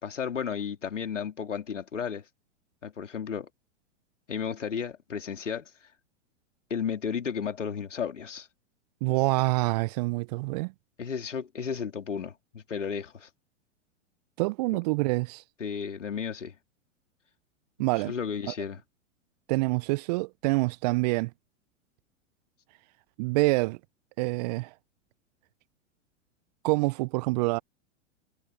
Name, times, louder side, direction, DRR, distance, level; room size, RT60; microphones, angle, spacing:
voice 1, 0.0-2.3 2.8-3.5 4.3-5.7 6.7-8.5 11.0-13.3 15.6-16.6 17.8-18.8, left 7 dB, 80° left, 3.5 m, -33 dB
voice 2, 9.0-10.7 14.4-15.4 17.8-18.1 18.5-18.6 19.5-21.3 23.2-23.8 24.2-24.7 26.6-27.6, right 24 dB, 35° right, 0.4 m, -26 dB
figure-of-eight pair, 100°, 37 cm